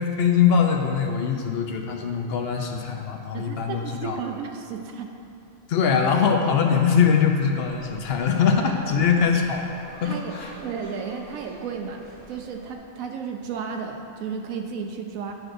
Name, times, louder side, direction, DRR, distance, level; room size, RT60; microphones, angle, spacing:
voice 1, 0.0-4.2 5.7-9.7 10.0-10.5, left 6 dB, 65° left, 2 dB, 0.6 m, -22 dB
voice 2, 3.3-5.1 9.0-9.1 10.0-10.3 10.6-12.0 12.3-15.3, right 6 dB, 80° right, 3 dB, 1.0 m, -33 dB
sound 1, 7.6-12.8, equal, 45° right, 1.4 m, -45 dB
9.0 x 6.2 x 2.5 m, 2.5 s
omnidirectional pair, 1.4 m